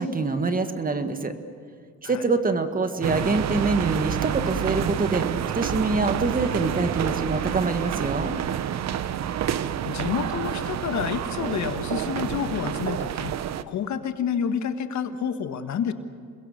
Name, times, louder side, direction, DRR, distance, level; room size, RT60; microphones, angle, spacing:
voice 1, 0.0-1.3 2.0-5.3 5.5-8.4, right 3 dB, 30° right, 8 dB, 1.8 m, -25 dB
sound 1, 3.0-13.6, right 9 dB, 60° right, 0.9 m, -28 dB
voice 2, 9.8-13.3 13.7-15.9, left 7 dB, 70° left, 8 dB, 1.6 m, -29 dB
28.0 x 22.0 x 6.7 m, 2.1 s
cardioid pair, 90°, 30 cm